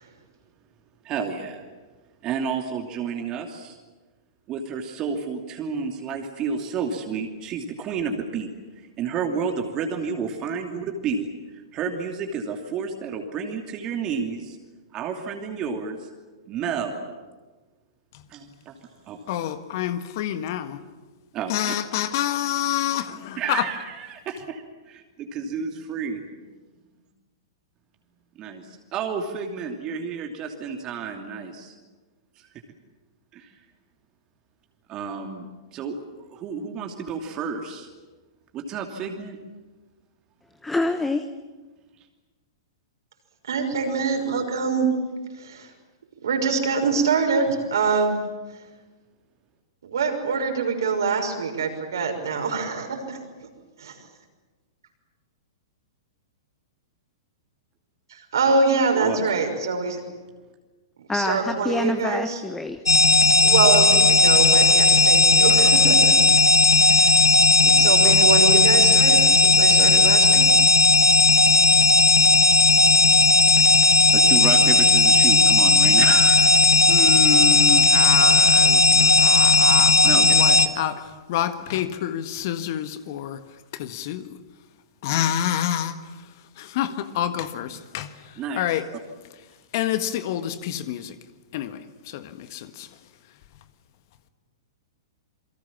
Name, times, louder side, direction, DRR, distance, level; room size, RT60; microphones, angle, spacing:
voice 1, 1.0-1.7 2.2-3.8 4.5-14.6 14.9-16.1 16.5-17.1 18.3-18.8 19.1-19.2 21.3-21.7 23.4-26.2 28.3-31.7 32.4-32.5 33.3-33.5 34.9-35.5 35.7-37.9 38.5-39.4 58.9-59.5 74.1-76.5 80.0-80.6 85.1-85.3 88.4-88.7, right 6 dB, 30° right, 3 dB, 2.8 m, -31 dB
voice 2, 19.3-20.8 21.5-23.7 76.9-84.4 85.0-88.9 89.7-91.2 91.5-93.0, left 11 dB, 50° left, 10 dB, 1.6 m, -28 dB
voice 3, 40.6-41.3 61.1-62.8, left 2 dB, 10° left, 9 dB, 1.1 m, -26 dB
voice 4, 43.5-44.9 45.4-45.7 46.2-48.2 49.8-53.2 53.8-53.9 58.1-60.0 61.1-62.4 63.4-66.2 66.8-67.2 67.6-70.4, right 4 dB, 65° right, 4 dB, 5.9 m, -24 dB
sound 1, 62.9-80.7, left 3 dB, 90° left, 1.4 m, -16 dB
28.5 x 23.0 x 7.4 m, 1.3 s
figure-of-eight pair, 105°, 2 cm